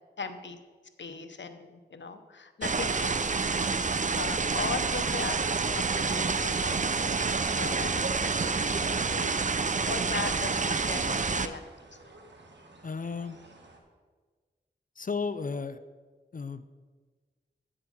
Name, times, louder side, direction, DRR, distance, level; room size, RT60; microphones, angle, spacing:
voice 1, 0.2-0.6 1.0-3.3 4.1-9.4 9.9-11.6, left 4 dB, 80° left, 9 dB, 0.8 m, -38 dB
sound 1, 2.6-11.5, right 4 dB, 45° right, 0.5 m, -28 dB
sound 2, 6.2-13.8, right 3 dB, 75° right, 1.4 m, -49 dB
voice 2, 12.8-13.4 15.0-15.8 16.3-16.8, left 5 dB, 50° left, 13 dB, 0.5 m, -34 dB
8.2 x 7.6 x 6.3 m, 1.4 s
wide cardioid pair, 55°, 18 cm